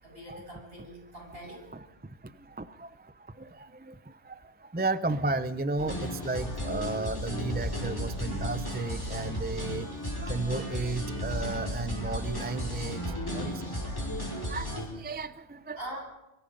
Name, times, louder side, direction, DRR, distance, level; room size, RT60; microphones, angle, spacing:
voice 1, 0.0-1.7 15.8-16.0, right 1 dB, 60° right, 0 dB, 8.0 m, -42 dB
voice 2, 2.6-2.9 3.4-3.5 3.8-3.9 4.7-9.9 10.2-13.0 13.3-13.5 14.5-14.7 15.0-15.8, right 3 dB, 10° right, 13 dB, 0.5 m, -33 dB
sound 1, 5.8-14.9, equal, 20° left, 5.6 m, -34 dB
25.0 x 22.5 x 5.3 m, 0.96 s
omnidirectional pair, 1.1 m